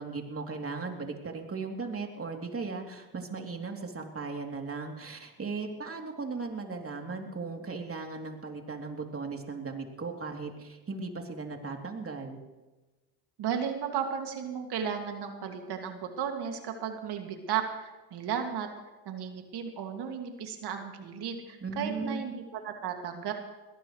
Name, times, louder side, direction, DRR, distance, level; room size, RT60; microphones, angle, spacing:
voice 1, 0.0-12.4 21.6-22.2, right 4 dB, 30° right, 2 dB, 3.2 m, -37 dB
voice 2, 13.4-18.7 19.1-23.3, right 7 dB, 65° right, 4 dB, 2.4 m, -34 dB
22.0 x 17.5 x 3.3 m, 1.1 s
supercardioid pair, 75°, 43 cm